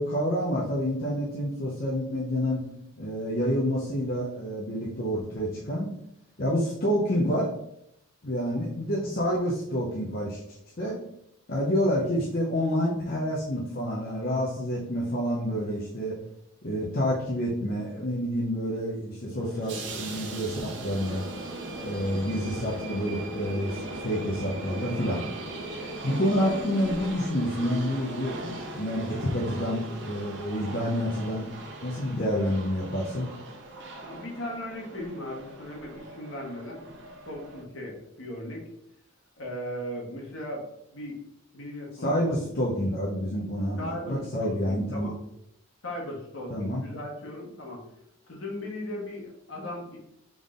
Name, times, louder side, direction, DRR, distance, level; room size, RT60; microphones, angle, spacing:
voice 1, 0.0-2.6 3.0-5.9 6.4-7.5 8.2-10.4 10.8-11.0 11.5-16.2 16.6-21.2 21.8-25.2 26.0-31.5 31.8-33.3 42.0-45.1 46.5-46.8, equal, 45° left, -5 dB, 0.7 m, -28 dB
sound 1, 19.3-37.6, right 1 dB, 55° right, 0.9 m, -39 dB
voice 2, 34.0-36.9 37.2-38.6 39.4-40.7 40.9-41.2 41.5-42.4 43.8-45.2 45.8-47.8 48.3-50.0, left 1 dB, 65° left, -2 dB, 1.5 m, -37 dB
3.9 x 3.6 x 3.7 m, 0.79 s
head